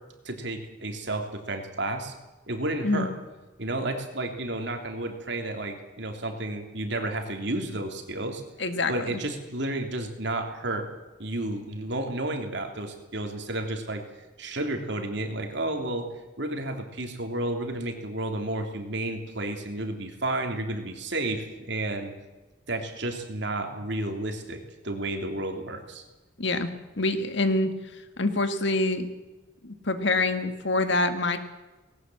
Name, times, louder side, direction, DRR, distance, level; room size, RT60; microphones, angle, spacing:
voice 1, 0.2-2.1 2.5-3.1 3.6-8.4 8.9-10.9 11.2-14.0 14.4-16.1 16.4-22.1 22.7-26.0, right 2 dB, 55° right, 4 dB, 3.1 m, -31 dB
voice 2, 8.6-9.2 26.4-26.7 27.0-29.1 29.6-31.4, left 2 dB, 55° left, 8 dB, 1.9 m, -26 dB
19.5 x 18.5 x 7.8 m, 1.1 s
head